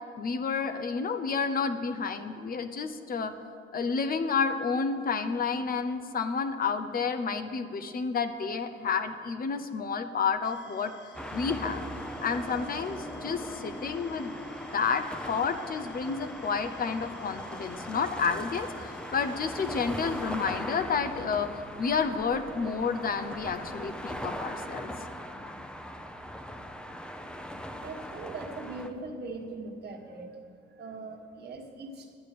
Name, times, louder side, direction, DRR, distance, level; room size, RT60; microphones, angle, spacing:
voice 1, 0.2-3.3 3.7-10.9 11.3-11.8 12.2-14.3 14.7-24.9, left 5 dB, 50° left, 8 dB, 0.8 m, -30 dB
sound 1, 10.4-20.5, left 5 dB, 65° left, 1.2 m, -50 dB
sound 2, 11.1-28.9, equal, 5° left, 0.7 m, -40 dB
voice 2, 27.8-30.3 30.8-32.1, right 3 dB, 55° right, 2 dB, 1.6 m, -40 dB
10.0 x 8.1 x 6.7 m, 2.5 s
cardioid pair, 90°, 20 cm